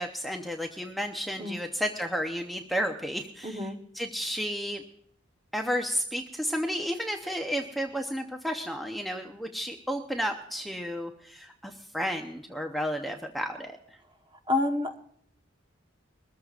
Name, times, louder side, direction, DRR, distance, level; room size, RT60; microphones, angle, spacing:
voice 1, 0.0-3.6 4.0-4.8 5.5-13.8, equal, ahead, 2 dB, 0.7 m, -32 dB
voice 2, 3.4-3.8 14.5-15.0, left 2 dB, 25° right, 5 dB, 1.2 m, -28 dB
22.0 x 14.0 x 2.5 m, 0.64 s
head